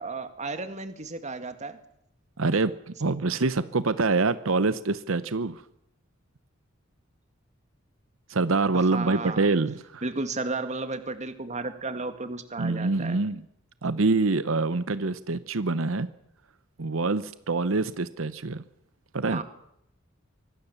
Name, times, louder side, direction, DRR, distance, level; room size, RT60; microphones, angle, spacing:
voice 1, 0.0-1.8 8.7-9.5 10.0-13.2 19.3-19.4, right 3 dB, 35° right, 9 dB, 2.0 m, -33 dB
voice 2, 2.4-5.6 8.3-10.0 12.6-13.4 13.8-16.1 16.8-18.6 19.1-19.4, right 3 dB, 90° right, 14 dB, 0.9 m, -25 dB
24.5 x 19.0 x 7.2 m, 0.77 s
head